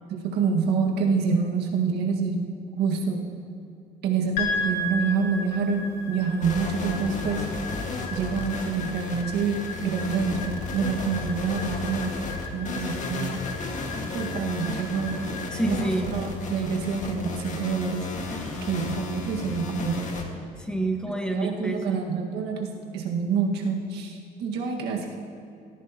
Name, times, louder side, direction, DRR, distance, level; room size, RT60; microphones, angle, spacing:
voice 1, 0.1-2.5 2.8-3.3 4.0-7.4 8.1-12.2 12.5-13.4 14.1-15.3 15.6-18.1 18.6-20.1 21.3-25.1, right 5 dB, 75° right, 1 dB, 1.7 m, -27 dB
sound 1, 4.4-18.7, left 2 dB, 85° left, 2.0 m, -37 dB
sound 2, 6.4-20.2, left 3 dB, 45° left, 1.8 m, -33 dB
voice 2, 15.1-16.1 18.3-18.9 20.6-22.0, right 2 dB, 5° left, 3 dB, 1.3 m, -30 dB
18.0 x 14.0 x 2.9 m, 2.5 s
cardioid pair, 110°, 17 cm